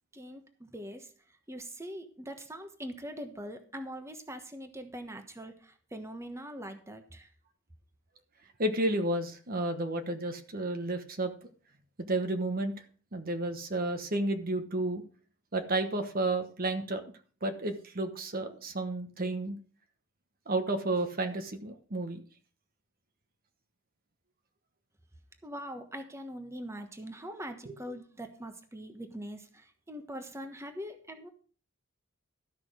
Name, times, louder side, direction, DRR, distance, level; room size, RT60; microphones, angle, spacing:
voice 1, 0.1-1.1 1.5-7.3 25.4-31.3, equal, 15° right, 7 dB, 1.2 m, -42 dB
voice 2, 8.6-11.3 12.1-12.7 13.1-15.0 15.5-17.0 17.4-19.6 20.5-22.2 27.7-27.8, right 2 dB, 45° right, 7 dB, 1.2 m, -31 dB
13.0 x 6.1 x 6.2 m, 0.41 s
head